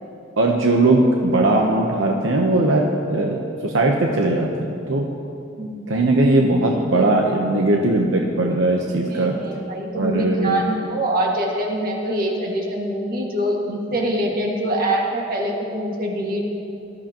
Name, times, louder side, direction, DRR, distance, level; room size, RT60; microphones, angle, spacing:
voice 1, 0.4-5.1 5.9-9.4 10.0-10.6, right 2 dB, 80° right, 1 dB, 0.9 m, -19 dB
voice 2, 5.6-5.9 9.1-16.4, right 1 dB, 50° right, -1 dB, 1.9 m, -24 dB
19.0 x 12.5 x 3.0 m, 2.7 s
head